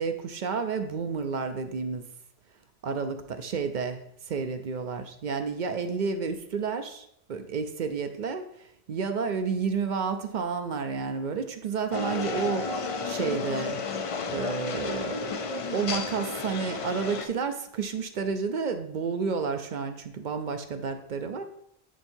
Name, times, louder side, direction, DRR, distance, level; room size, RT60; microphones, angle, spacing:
voice 1, 0.0-2.0 2.8-12.8 13.0-13.8 14.2-15.2 15.7-21.4, right 5 dB, 55° right, 8 dB, 0.6 m, -31 dB
sound 1, 11.9-17.3, left 4 dB, 45° left, 0.4 m, -32 dB
10.0 x 4.4 x 2.7 m, 0.72 s
omnidirectional pair, 1.1 m